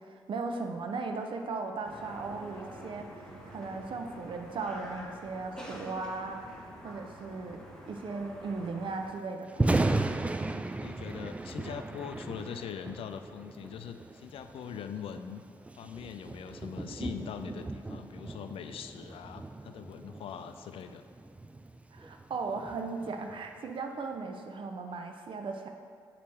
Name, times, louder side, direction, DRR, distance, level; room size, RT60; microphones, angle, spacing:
voice 1, 0.0-3.1 3.5-9.8 21.9-25.8, right 4 dB, 50° right, 5 dB, 0.8 m, -37 dB
sound 1, 1.8-9.1, equal, 5° left, 1.5 m, -47 dB
Thunder, 9.4-23.6, right 2 dB, 10° right, 0.4 m, -36 dB
voice 2, 10.7-15.4 15.8-21.0, left 8 dB, 60° left, 8 dB, 0.5 m, -42 dB
8.3 x 3.1 x 6.3 m, 2.2 s
hypercardioid pair, 45°, 11 cm